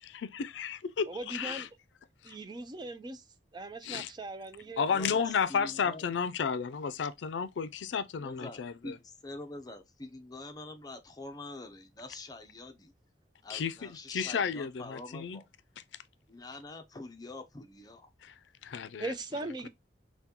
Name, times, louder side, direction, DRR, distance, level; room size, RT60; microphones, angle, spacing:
voice 1, 0.2-1.7 2.2-2.4 3.8-4.1 4.8-9.0 13.5-15.4 18.2-19.1 19.6-19.7, left 6 dB, 85° left, 0.4 m, -33 dB
voice 2, 1.1-1.7 2.2-3.2 3.5-4.9 19.0-19.7, right 2 dB, 25° right, 0.4 m, -39 dB
voice 3, 4.8-6.1 8.2-12.9 13.4-15.5 16.3-18.1, left 2 dB, 20° left, 0.5 m, -45 dB
5.7 x 2.2 x 2.8 m
head